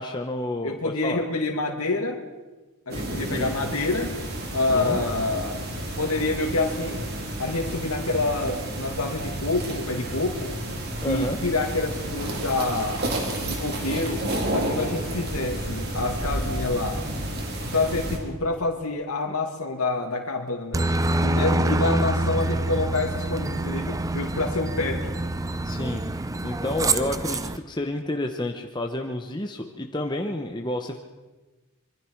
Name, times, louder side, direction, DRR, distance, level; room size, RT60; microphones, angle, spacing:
voice 1, 0.0-1.2 3.3-3.5 4.7-5.0 11.0-11.4 25.6-26.0 26.4-31.0, left 1 dB, 20° left, 3 dB, 1.0 m, -30 dB
voice 2, 0.6-2.2 2.9-4.2 4.5-5.6 6.0-7.0 7.4-10.5 11.0-13.0 13.4-14.2 14.5-17.1 17.7-20.9 21.2-25.1, left 2 dB, 85° left, 2 dB, 2.3 m, -27 dB
sound 1, 2.9-18.2, right 1 dB, 45° right, 3.7 m, -31 dB
Aircraft, 20.7-27.6, right 2 dB, 15° right, 0.6 m, -26 dB
25.5 x 23.5 x 4.7 m, 1.2 s
head